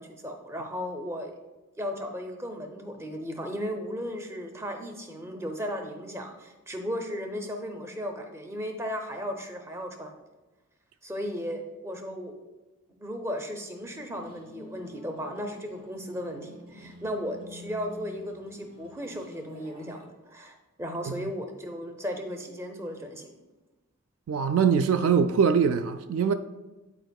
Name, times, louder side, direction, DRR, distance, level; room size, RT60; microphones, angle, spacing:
voice 1, 0.0-1.3 1.8-10.1 11.0-12.3 13.0-23.3, equal, 10° right, 0.6 m, -35 dB
sound 1, 13.8-20.1, left 2 dB, 40° right, 1.0 m, -49 dB
voice 2, 24.3-26.3, right 6 dB, 65° right, 0.3 m, -23 dB
10.5 x 4.4 x 2.3 m
head